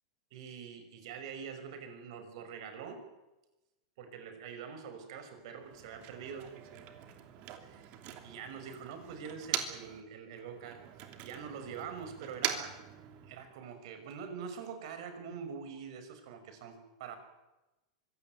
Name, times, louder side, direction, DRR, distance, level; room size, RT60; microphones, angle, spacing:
voice 1, 0.3-3.1 4.0-6.5 7.6-7.9 8.2-10.8 11.2-12.8 13.2-17.2, right 6 dB, 60° right, 8 dB, 5.7 m, -44 dB
Motor vehicle (road), 5.6-10.0 10.3-13.6, right 10 dB, 45° right, 2.9 m, -42 dB
24.0 x 16.5 x 9.4 m, 1.0 s
supercardioid pair, 145°, 3 cm